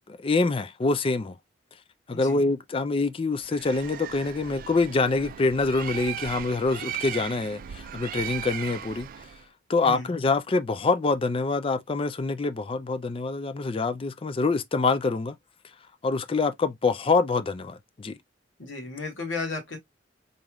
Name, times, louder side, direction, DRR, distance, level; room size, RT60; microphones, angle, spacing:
voice 1, 0.0-1.3 2.1-9.1 9.7-15.3 16.0-18.1, left 3 dB, 30° left, 0.4 m, -25 dB
voice 2, 2.1-2.4 9.8-10.1 18.6-19.8, left 3 dB, 75° left, 1.8 m, -34 dB
Bird, 3.4-9.4, right 10 dB, 45° right, 0.3 m, -37 dB
4.0 x 3.4 x 2.3 m
head